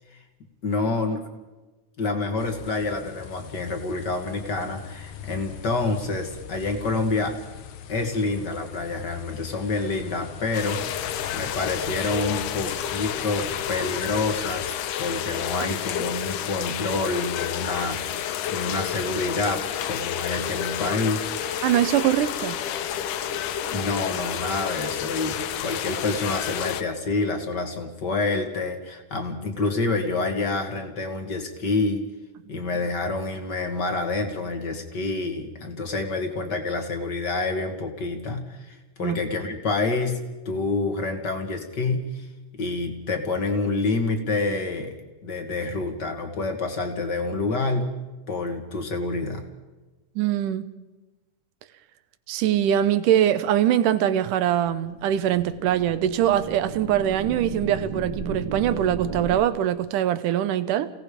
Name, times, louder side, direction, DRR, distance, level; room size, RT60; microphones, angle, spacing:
voice 1, 0.6-1.2 2.0-7.4 7.9-10.9 11.3-14.7 15.0-21.6 23.7-32.0 32.5-42.3 42.6-44.9 45.2-47.9 48.3-49.4, left 3 dB, 35° left, 2.6 m, -28 dB
sound 1, 2.4-14.7, left 7 dB, 65° left, 1.8 m, -41 dB
sound 2, 10.5-26.8, left 10 dB, 85° left, 2.5 m, -30 dB
voice 2, 21.6-22.6 39.0-39.2 50.2-50.7 52.3-60.9, right 11 dB, 80° right, 2.5 m, -22 dB
sound 3, 54.6-59.4, right 3 dB, 40° right, 2.2 m, -34 dB
29.5 x 18.0 x 5.3 m
omnidirectional pair, 3.7 m